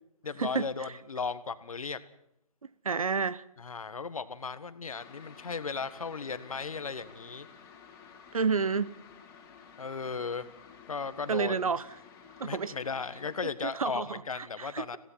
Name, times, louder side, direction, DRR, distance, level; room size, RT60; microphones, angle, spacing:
voice 1, 0.2-2.0 3.6-7.5 9.8-10.5 10.9-11.6 12.4-15.0, left 5 dB, 65° left, 1.6 m, -36 dB
voice 2, 2.8-3.4 8.3-8.9 11.3-11.8 12.4-12.7 13.6-15.0, right 5 dB, 65° right, 1.0 m, -30 dB
sound 1, 4.9-13.4, left 6 dB, 15° left, 4.0 m, -53 dB
27.0 x 17.0 x 5.8 m
figure-of-eight pair, 140°, 19 cm